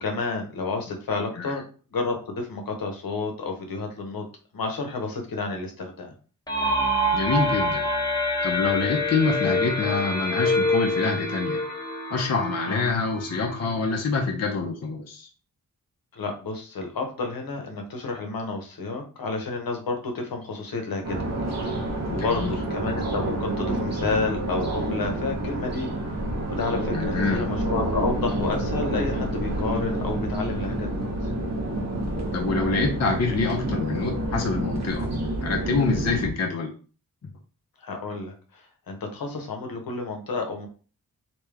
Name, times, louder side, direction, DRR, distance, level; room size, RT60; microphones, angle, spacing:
voice 1, 0.0-1.6 1.9-4.2 4.5-6.1 12.6-12.8 16.1-21.2 21.4-21.8 22.1-26.2 26.5-31.1 37.8-40.7, left 3 dB, 75° left, 3 dB, 1.0 m, -30 dB
sound 1, 6.5-14.1, left 1 dB, 10° left, 0.8 m, -26 dB
voice 2, 7.1-7.9 8.4-11.6 12.1-15.3 22.1-22.5 26.9-27.4 32.3-35.1 35.4-36.7 37.2-37.3, left 4 dB, 45° left, 1 dB, 0.7 m, -26 dB
sound 2, 21.0-36.3, right 1 dB, 50° right, 0.9 m, -28 dB
3.4 x 2.9 x 3.4 m, 0.38 s
wide cardioid pair, 110°, 35 cm